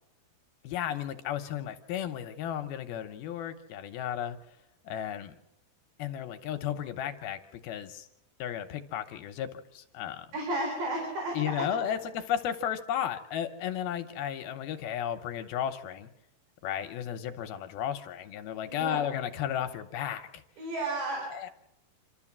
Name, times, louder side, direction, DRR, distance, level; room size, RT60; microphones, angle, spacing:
voice 1, 0.6-4.4 4.8-5.4 6.0-8.1 8.4-10.3 11.3-16.1 16.6-20.3 21.3-21.5, left 10 dB, 75° left, 7 dB, 2.5 m, -34 dB
voice 2, 10.3-11.6 18.7-19.1 20.6-21.3, right 2 dB, 85° right, 1 dB, 6.5 m, -33 dB
28.0 x 13.0 x 7.3 m, 0.86 s
omnidirectional pair, 4.9 m